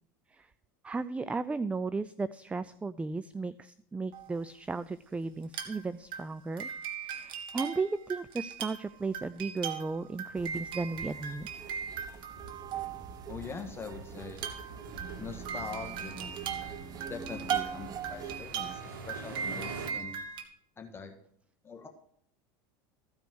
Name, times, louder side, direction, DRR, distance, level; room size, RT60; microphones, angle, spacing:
voice 1, 0.8-6.7 7.0-11.5, right 3 dB, 10° right, 16 dB, 0.4 m, -35 dB
sound 1, 4.1-4.3 5.4-5.9 6.1-13.4 14.3-20.4, right 7 dB, 50° right, 1.8 m, -40 dB
sound 2, 10.3-18.4, right 8 dB, 35° right, 0.9 m, -41 dB
sound 3, 12.3-19.9, right 3 dB, 90° right, 1.8 m, -47 dB
voice 2, 13.3-14.5 15.2-16.3 17.1-20.2 20.8-21.1 21.6-21.9, left 5 dB, 20° left, 4 dB, 1.5 m, -43 dB
15.0 x 5.2 x 6.1 m, 0.68 s
supercardioid pair, 100°, 11 cm